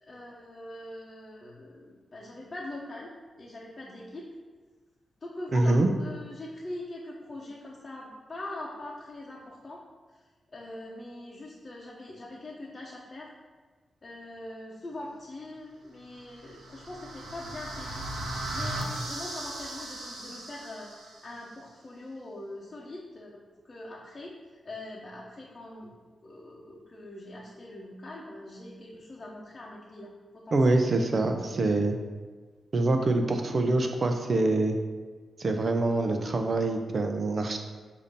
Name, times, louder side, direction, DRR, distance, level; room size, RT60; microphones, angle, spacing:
voice 1, 0.0-3.1 3.4-4.3 5.2-9.8 10.1-10.2 10.5-13.3 14.0-23.3 23.6-25.9 26.2-30.8, left 1 dB, 35° left, -4 dB, 0.9 m, -42 dB
voice 2, 5.5-5.9 30.5-32.0 32.7-34.8 35.4-37.6, right 2 dB, 45° right, 5 dB, 0.7 m, -25 dB
sound 1, 16.2-21.3, right 1 dB, 90° right, 1.0 m, -37 dB
6.8 x 2.8 x 5.2 m, 1.4 s
cardioid pair, 85°, 0 cm